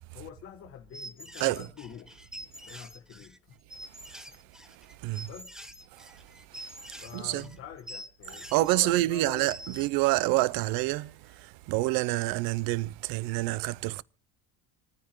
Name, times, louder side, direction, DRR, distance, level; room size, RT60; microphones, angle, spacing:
voice 1, 0.1-2.3 2.7-3.3 5.2-5.6 7.0-9.5, left 9 dB, 35° left, 1.4 m, -45 dB
sound 1, 0.9-9.9 10.2-11.0, equal, ahead, 0.6 m, -46 dB
voice 2, 7.1-7.5 8.5-14.0, right 19 dB, 65° right, 0.5 m, -27 dB
27.5 x 9.5 x 3.0 m
cardioid pair, 145°, 37 cm